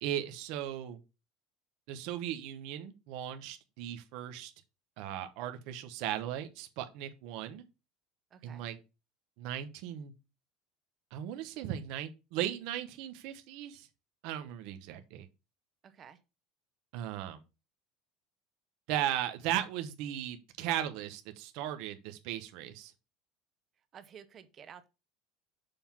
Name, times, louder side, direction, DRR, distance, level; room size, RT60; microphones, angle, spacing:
voice 1, 0.0-1.0 1.9-4.5 5.0-7.6 8.4-8.8 9.4-10.1 11.1-13.9 14.2-15.3 16.9-17.4 18.9-22.9, right 11 dB, 55° right, 1.0 m, -37 dB
voice 2, 8.3-8.6 15.8-16.2 23.9-24.9, right 8 dB, 25° right, 0.7 m, -52 dB
6.9 x 3.7 x 5.8 m
cardioid pair, 175°, 0 cm